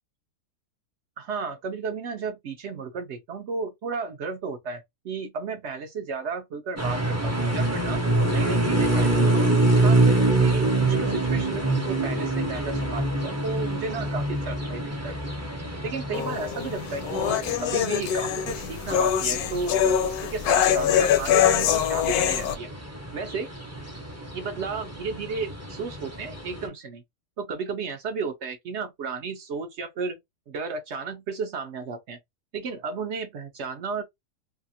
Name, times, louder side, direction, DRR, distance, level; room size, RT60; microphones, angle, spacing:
voice 1, 1.2-8.0 8.3-9.4 9.8-15.1 15.8-22.7 23.1-23.5 24.3-27.0 27.4-30.2 30.5-32.2 32.5-34.0, right 4 dB, 65° right, 0.7 m, -33 dB
sound 1, 6.8-26.7, right 2 dB, 20° right, 0.4 m, -26 dB
sound 2, 16.1-22.5, left 9 dB, 80° left, 1.1 m, -23 dB
2.7 x 2.4 x 2.6 m
omnidirectional pair, 1.6 m